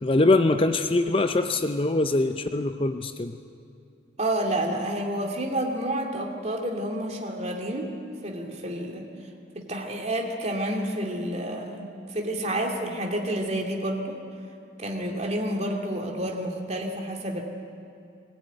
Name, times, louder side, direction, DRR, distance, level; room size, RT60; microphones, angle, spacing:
voice 1, 0.0-3.4, left 2 dB, 30° left, 8 dB, 0.6 m, -23 dB
voice 2, 4.2-7.9 8.2-9.1 9.5-14.2 14.8-17.4, right 1 dB, 35° right, 1 dB, 2.7 m, -29 dB
20.5 x 19.0 x 9.4 m, 2.5 s
head